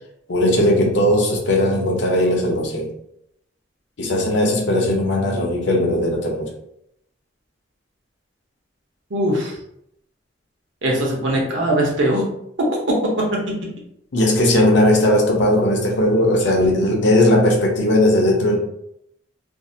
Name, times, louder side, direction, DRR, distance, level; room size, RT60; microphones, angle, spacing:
voice 1, 0.3-2.9 4.0-6.5 14.1-18.6, left 1 dB, 70° left, 0 dB, 0.6 m, -18 dB
voice 2, 9.1-9.5 10.8-12.2 12.6-12.7 13.2-13.4, right 1 dB, 80° right, -2 dB, 0.7 m, -20 dB
2.6 x 2.0 x 2.6 m, 0.75 s
head